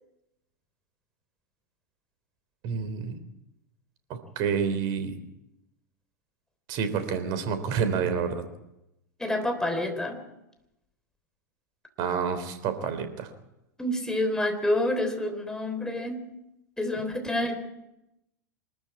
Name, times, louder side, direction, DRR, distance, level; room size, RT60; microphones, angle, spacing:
voice 1, 2.6-3.2 4.1-5.2 6.7-8.4 12.0-13.3 16.9-17.0, right 6 dB, 45° right, 10 dB, 3.4 m, -29 dB
voice 2, 9.2-10.2 13.8-16.3 16.8-17.6, left 1 dB, 5° left, 6 dB, 3.7 m, -28 dB
24.0 x 13.5 x 8.6 m, 0.91 s
figure-of-eight pair, 90°, 10 cm